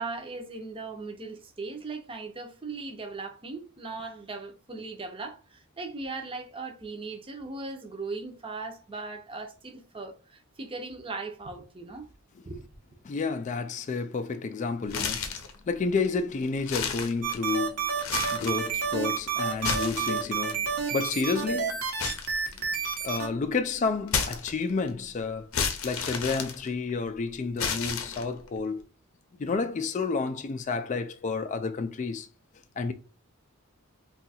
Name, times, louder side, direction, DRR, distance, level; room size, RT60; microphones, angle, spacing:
voice 1, 0.0-12.1 12.5-12.6, right 3 dB, 25° right, 0.6 m, -38 dB
voice 2, 13.0-15.3 15.7-17.9 18.3-21.8 22.6-22.7 23.0-25.5 25.8-28.8 29.4-32.3 32.8-32.9, left 4 dB, 35° left, 0.3 m, -30 dB
sound 1, 14.9-15.5 16.0-16.1 16.6-17.6 18.0-18.6 19.5-20.5 22.0-23.0 24.1-24.9 25.5-27.1 27.6-28.5, left 6 dB, 70° left, 0.6 m, -31 dB
sound 2, 17.2-23.3, right 6 dB, 85° right, 0.9 m, -29 dB
2.8 x 2.3 x 4.0 m
head